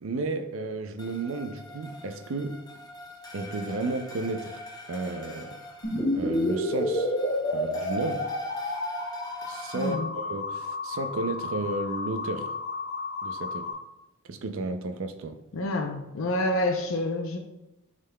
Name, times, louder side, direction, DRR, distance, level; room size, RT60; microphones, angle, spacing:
voice 1, 0.0-2.6 3.3-4.6 4.9-5.6 6.1-7.1 7.5-8.3 9.4-12.5 13.2-13.7 14.2-15.4, right 2 dB, 65° right, 0.4 m, -33 dB
sound 1, 1.0-9.9, equal, 20° left, 0.6 m, -44 dB
sound 2, 5.8-13.7, left 1 dB, 40° left, 2.0 m, -30 dB
voice 2, 9.7-10.1 15.5-17.4, left 1 dB, 70° left, 0.6 m, -28 dB
11.0 x 3.8 x 2.2 m
head